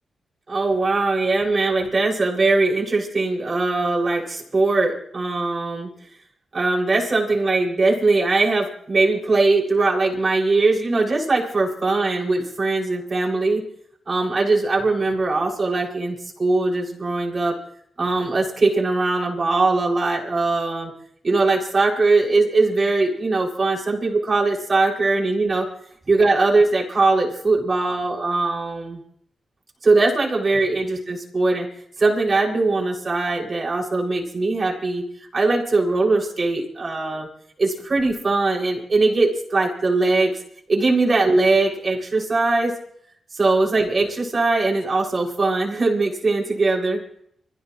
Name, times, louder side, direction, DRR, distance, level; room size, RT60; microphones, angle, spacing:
voice 1, 0.5-5.9 6.5-13.7 14.1-17.6 18.0-20.9 21.2-25.7 26.1-29.0 29.8-31.7 32.0-35.0 35.3-37.3 37.6-40.4 40.7-42.8 43.3-47.0, right 3 dB, 40° right, -2 dB, 7.3 m, -21 dB
25.5 x 16.5 x 3.4 m, 0.67 s
cardioid pair, 65°, 0 cm